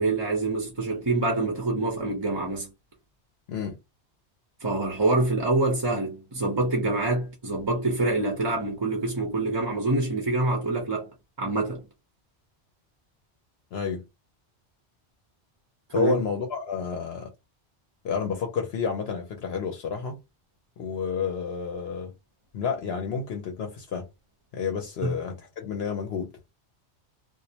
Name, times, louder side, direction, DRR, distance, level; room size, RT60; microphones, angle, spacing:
voice 1, 0.0-2.7 4.6-11.1 11.4-11.8 15.9-16.2 25.0-25.2, right 2 dB, 30° right, 0.5 m, -26 dB
voice 2, 13.7-14.0 15.9-17.3 18.0-20.2 20.8-22.1 22.5-24.1 24.5-26.3, left 6 dB, 70° left, 0.8 m, -30 dB
2.4 x 2.0 x 2.7 m
omnidirectional pair, 1.1 m